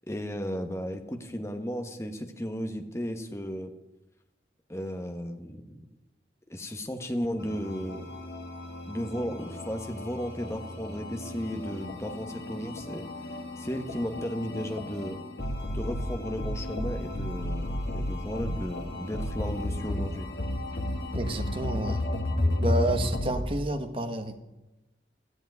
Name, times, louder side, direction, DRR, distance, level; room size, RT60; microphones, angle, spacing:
voice 1, 0.1-3.7 4.7-5.8 6.5-8.1 8.9-13.1 13.6-15.2 15.7-20.3, equal, 15° left, 6 dB, 1.2 m, -34 dB
sound 1, 7.4-23.4, left 1 dB, 80° left, 2.2 m, -33 dB
voice 2, 21.1-22.0 22.6-24.4, right 1 dB, 30° right, 7 dB, 1.2 m, -30 dB
14.0 x 8.0 x 9.4 m, 1.0 s
head